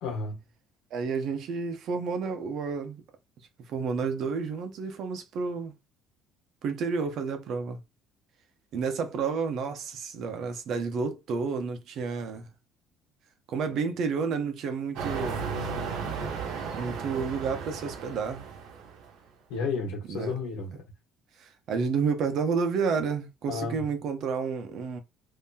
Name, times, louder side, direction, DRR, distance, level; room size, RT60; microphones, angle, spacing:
voice 1, 0.0-0.4 19.5-20.8 23.5-23.9, left 4 dB, 85° left, 1.5 m, -32 dB
voice 2, 0.9-3.0 3.7-5.7 6.6-7.8 8.7-12.5 13.5-15.5 16.7-18.4 20.1-20.3 21.4-25.0, right 5 dB, 55° right, 0.8 m, -30 dB
sound 1, 15.0-19.1, right 5 dB, 80° right, 1.1 m, -34 dB
3.8 x 2.8 x 2.8 m
cardioid pair, 125°, 0 cm